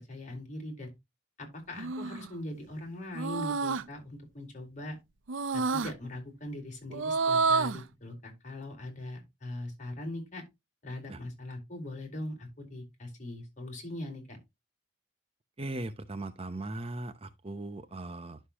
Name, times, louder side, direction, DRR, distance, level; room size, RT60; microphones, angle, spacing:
voice 1, 0.1-0.9 1.4-5.0 5.5-10.4 10.8-14.4, left 1 dB, 40° left, 4.3 m, -41 dB
sound 1, 1.8-2.3 3.1-3.8 5.3-5.9 6.9-7.8, right 4 dB, 85° right, 0.6 m, -29 dB
voice 2, 15.6-18.4, right 2 dB, 30° right, 0.7 m, -38 dB
11.0 x 6.6 x 3.0 m
head